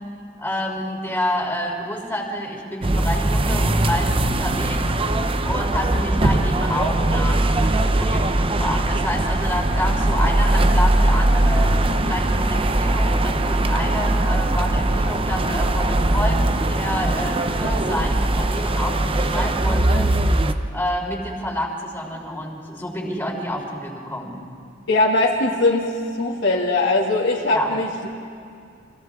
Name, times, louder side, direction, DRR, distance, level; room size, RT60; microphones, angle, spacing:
voice 1, 0.4-4.9 5.4-11.7 12.0-20.1 20.7-24.4 27.5-27.8, left 1 dB, 10° left, -2 dB, 3.6 m, -28 dB
sound 1, 2.8-20.5, right 1 dB, 30° right, 0.7 m, -20 dB
sound 2, 6.2-7.7 8.0-11.3 11.5-12.1 12.4-13.0, equal, 10° right, 2.1 m, -34 dB
voice 2, 24.9-25.9 26.2-28.1, left 2 dB, 70° left, -3 dB, 2.3 m, -20 dB
30.0 x 25.5 x 3.7 m, 2.4 s
head